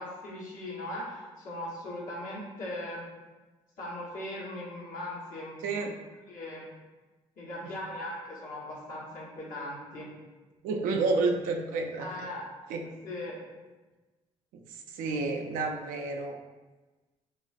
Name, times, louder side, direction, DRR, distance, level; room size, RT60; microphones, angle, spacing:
voice 1, 0.0-3.0 3.8-5.9 6.3-6.6 7.4-10.1 12.0-12.4 13.0-13.4, left 1 dB, 75° left, -6 dB, 0.9 m, -39 dB
voice 2, 10.6-12.3 12.7-13.0 14.5-16.4, right 3 dB, 80° right, 3 dB, 0.4 m, -30 dB
3.0 x 2.4 x 2.4 m, 1.2 s
supercardioid pair, 50°, 14 cm